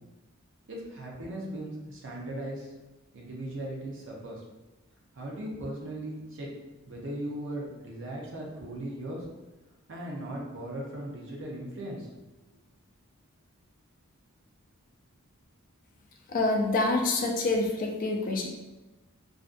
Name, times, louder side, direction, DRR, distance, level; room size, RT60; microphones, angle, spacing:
voice 1, 0.7-2.7 3.1-4.4 5.1-6.5 6.9-9.3 9.9-12.2, right 1 dB, 60° right, -2 dB, 0.6 m, -38 dB
voice 2, 16.3-18.5, left 2 dB, 40° left, 2 dB, 0.3 m, -26 dB
2.4 x 2.2 x 2.5 m, 1.1 s
head